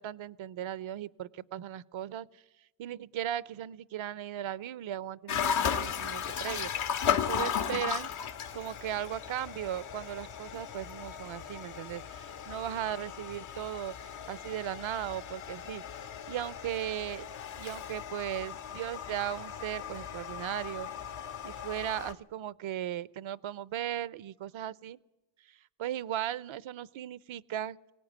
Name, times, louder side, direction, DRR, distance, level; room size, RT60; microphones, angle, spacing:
voice 1, 0.0-2.4 2.8-6.7 7.2-8.1 8.5-15.8 16.3-17.3 17.6-20.9 21.4-25.0 25.4-27.8, right 11 dB, 70° right, 20 dB, 0.8 m, -37 dB
sound 1, 5.3-22.1, left 8 dB, 80° left, 1.7 m, -36 dB
22.5 x 18.0 x 9.5 m, 1.0 s
cardioid pair, 60°, 49 cm